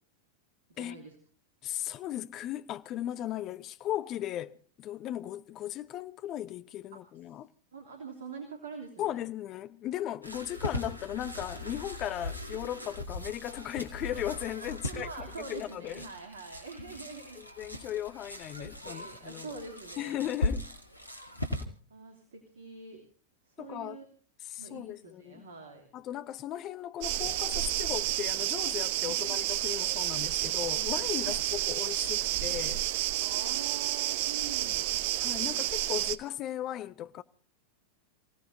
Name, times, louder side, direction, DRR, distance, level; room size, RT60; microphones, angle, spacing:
voice 1, 0.7-1.2 6.9-7.0 7.7-9.2 14.8-17.4 18.6-20.3 21.9-23.0 23.5-24.0 24.6-25.9 29.1-29.4 31.2-31.4 33.2-35.0, right 4 dB, 65° right, 3.0 m, -45 dB
voice 2, 1.6-7.5 9.0-16.0 17.4-19.5 20.0-20.7 23.6-24.0 24.4-25.4 25.9-32.8 35.2-37.2, left 12 dB, 35° left, 0.9 m, -37 dB
sound 1, 10.2-21.6, left 2 dB, 85° left, 2.1 m, -39 dB
sound 2, 27.0-36.2, right 15 dB, 50° right, 0.8 m, -30 dB
29.0 x 17.0 x 2.8 m
figure-of-eight pair, 90°, 0 cm